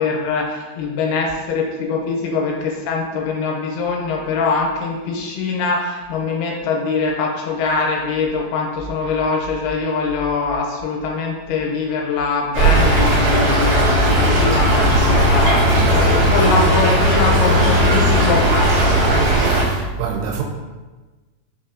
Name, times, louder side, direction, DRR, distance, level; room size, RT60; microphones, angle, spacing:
voice 1, 0.0-18.9, left 4 dB, 80° left, 2.6 m, -23 dB
Stream / Trickle dribble, 12.5-19.6, equal, 70° right, 1.6 m, -16 dB
voice 2, 19.1-20.4, right 6 dB, 85° right, 2.6 m, -27 dB
5.7 x 2.7 x 2.4 m
omnidirectional pair, 4.5 m